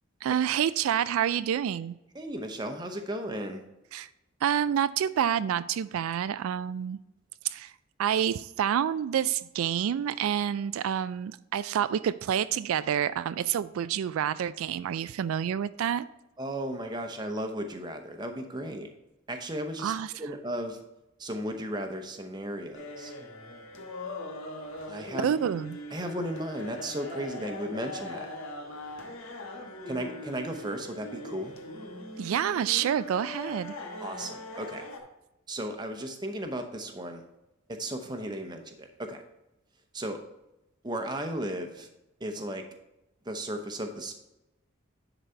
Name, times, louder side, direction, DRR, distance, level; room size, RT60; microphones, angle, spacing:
voice 1, 0.2-2.0 3.9-4.1 4.4-7.0 7.4-7.7 8.0-16.1 19.8-20.1 25.2-25.8 32.2-33.8, right 9 dB, 90° right, 15 dB, 0.3 m, -28 dB
voice 2, 2.1-3.6 16.4-18.9 19.3-19.9 20.2-20.8 21.2-23.1 24.9-25.3 25.9-28.3 29.9-31.5 34.0-34.8 35.5-37.2 37.8-39.2 39.9-40.2 40.8-41.9 42.2-42.6 43.2-44.1, right 1 dB, 20° right, 5 dB, 0.9 m, -35 dB
sound 1, 22.7-35.0, left 2 dB, 85° left, 1.3 m, -41 dB
10.0 x 4.1 x 4.5 m, 0.92 s
head